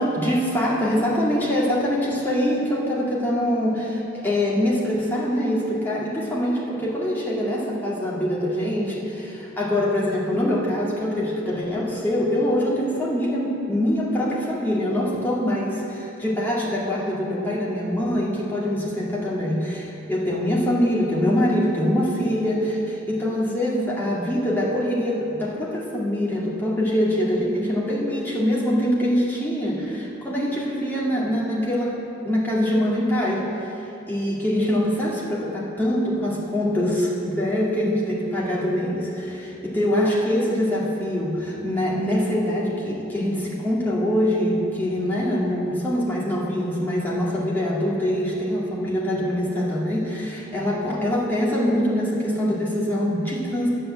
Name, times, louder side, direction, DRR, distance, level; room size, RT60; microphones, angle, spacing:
voice 1, 0.0-32.0 32.2-33.4 34.1-53.7, equal, 10° left, -6 dB, 2.1 m, -24 dB
10.0 x 8.7 x 7.7 m, 2.9 s
head